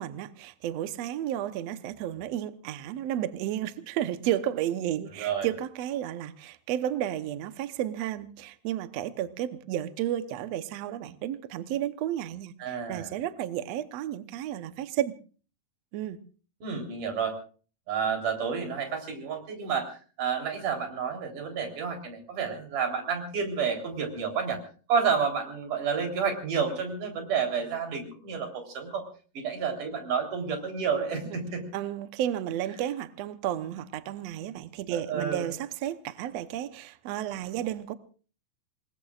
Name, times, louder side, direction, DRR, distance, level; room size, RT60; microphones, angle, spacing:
voice 1, 0.0-15.1 15.9-16.2 31.7-37.9, right 11 dB, 80° right, 1.5 m, -32 dB
voice 2, 5.1-5.5 12.6-13.2 16.6-17.4 17.9-24.6 24.9-29.0 29.3-31.7 34.9-35.5, right 6 dB, 60° right, 5.1 m, -30 dB
27.5 x 20.5 x 2.4 m
omnidirectional pair, 4.2 m